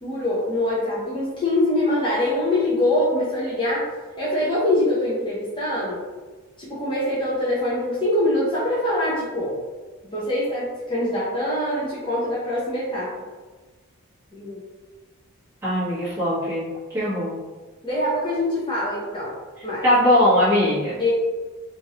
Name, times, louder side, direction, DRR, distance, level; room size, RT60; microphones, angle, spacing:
voice 1, 0.0-3.8 4.2-6.0 6.6-9.5 10.1-13.1 14.3-14.6 17.8-19.4 19.6-19.9 21.0-21.1, left 1 dB, 20° left, -8 dB, 0.6 m, -24 dB
voice 2, 15.6-17.4 19.8-21.0, left 1 dB, 10° right, -12 dB, 1.2 m, -20 dB
3.0 x 2.5 x 2.8 m, 1.3 s
head